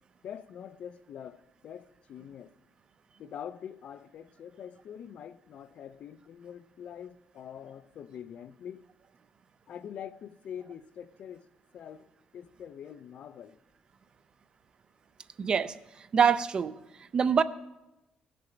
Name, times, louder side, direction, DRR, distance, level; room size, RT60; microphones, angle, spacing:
voice 1, 0.2-2.5 3.2-8.8 9.7-11.5 11.7-12.1 12.3-13.6, left 9 dB, 55° left, 0.4 m, -44 dB
voice 2, 15.4-16.7 17.0-17.4, right 6 dB, 35° right, 0.4 m, -25 dB
15.5 x 6.7 x 5.1 m
cardioid pair, 145°, 3 cm